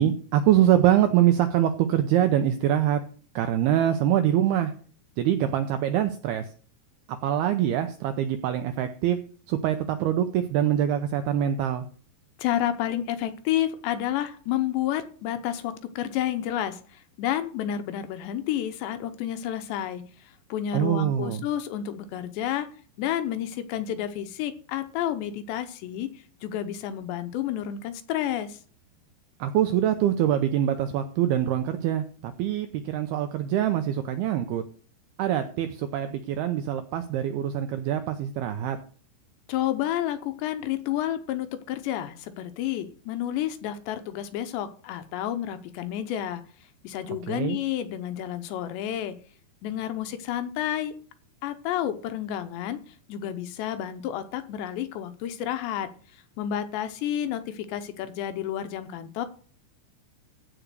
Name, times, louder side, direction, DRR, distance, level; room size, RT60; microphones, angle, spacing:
voice 1, 0.0-3.0 3.4-4.7 5.2-6.5 7.1-9.2 9.5-11.9 20.7-21.5 29.4-34.6 35.2-38.8 47.3-47.6, right 11 dB, 80° right, 8 dB, 2.2 m, -24 dB
voice 2, 12.4-20.0 20.5-22.7 23.0-26.1 26.4-28.6 39.5-46.4 46.8-49.2 49.6-50.9 51.4-52.8 53.1-55.9 56.4-59.3, left 11 dB, 75° left, 9 dB, 2.9 m, -30 dB
15.0 x 5.0 x 6.7 m, 0.43 s
omnidirectional pair, 5.4 m